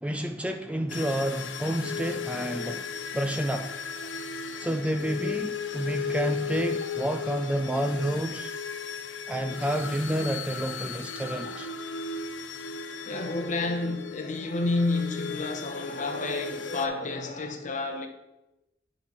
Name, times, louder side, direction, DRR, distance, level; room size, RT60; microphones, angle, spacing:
voice 1, 0.0-2.9 3.1-3.8 4.5-8.5 9.3-11.7, right 1 dB, 5° right, 0.4 m, -29 dB
sound 1, 0.9-16.9, left 5 dB, 75° left, 0.7 m, -36 dB
voice 2, 13.0-18.1, left 3 dB, 45° left, 0.9 m, -30 dB
9.9 x 3.9 x 5.9 m
head